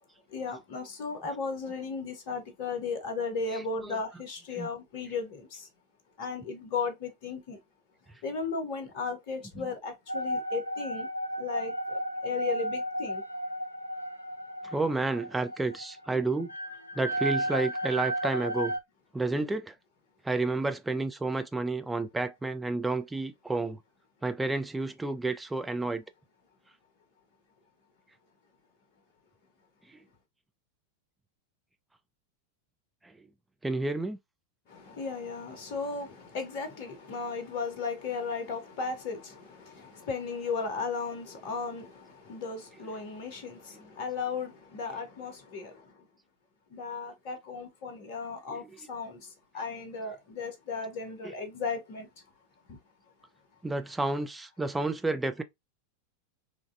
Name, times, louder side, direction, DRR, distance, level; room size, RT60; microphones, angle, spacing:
voice 1, 0.3-5.7 6.2-7.6 8.2-11.1 11.4-13.2 34.7-45.7 46.7-49.2 49.5-52.1 52.7-52.8, left 4 dB, 45° left, 0.8 m, -35 dB
voice 2, 3.5-4.0 4.5-4.7 9.6-9.7 14.6-16.5 17.0-18.7 19.1-19.7 20.2-23.8 24.2-26.0 29.9-30.0 33.0-33.1 33.6-34.2 43.7-43.9 48.5-48.6 51.2-51.3 53.6-55.4, right 3 dB, 10° right, 0.3 m, -31 dB
sound 1, 10.1-18.8, right 1 dB, 85° left, 0.4 m, -34 dB
3.0 x 2.5 x 2.4 m
figure-of-eight pair, 90°, 0 cm